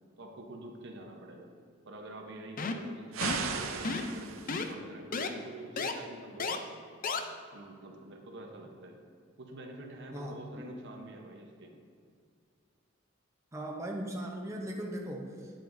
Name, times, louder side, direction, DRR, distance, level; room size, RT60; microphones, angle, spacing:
voice 1, 0.2-1.5 1.9-6.8 7.5-9.0 9.4-11.7, right 1 dB, 65° right, 2 dB, 0.9 m, -47 dB
sound 1, 2.6-2.9 3.2-3.5 3.8-4.2 4.5-4.7 5.1-5.3 5.8-5.9 6.4-6.6 7.0-7.2, left 4 dB, 45° left, 0.5 m, -32 dB
sound 2, 3.1-4.7, right 5 dB, 85° right, 0.6 m, -36 dB
voice 2, 10.1-10.7 13.5-15.5, right 1 dB, 15° right, -1 dB, 0.6 m, -38 dB
9.0 x 7.5 x 2.6 m, 2.2 s
head